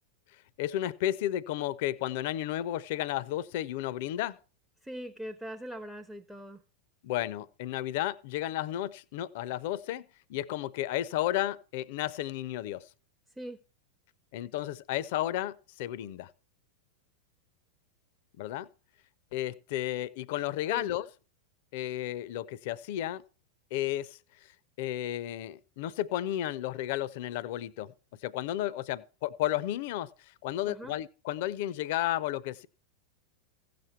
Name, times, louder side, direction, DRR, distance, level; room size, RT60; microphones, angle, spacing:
voice 1, 0.6-4.4 7.0-12.8 14.3-16.3 18.4-18.7 19.3-21.1 21.7-23.2 23.7-24.2 24.8-27.9 28.2-30.1 30.4-32.7, left 13 dB, 50° left, 0.5 m, -33 dB
voice 2, 4.8-6.6 13.4-13.6 20.7-20.9 30.7-31.0, equal, 5° right, 0.5 m, -41 dB
15.5 x 6.8 x 4.5 m
figure-of-eight pair, 90°, 0 cm